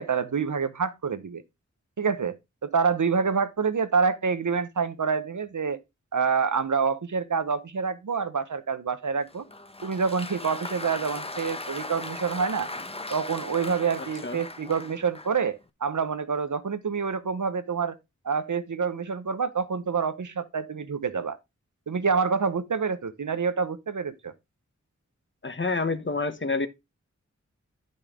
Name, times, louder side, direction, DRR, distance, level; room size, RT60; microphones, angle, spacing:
voice 1, 0.0-1.4 2.0-2.4 2.6-5.8 6.1-9.4 9.8-12.7 13.1-18.0 18.2-21.4 21.9-24.3, right 5 dB, 85° right, 1.0 m, -27 dB
Applause, 9.3-15.5, left 2 dB, 20° left, 0.9 m, -38 dB
voice 2, 25.4-26.7, left 3 dB, 40° left, 1.1 m, -28 dB
10.5 x 5.4 x 3.6 m
wide cardioid pair, 65°, 30 cm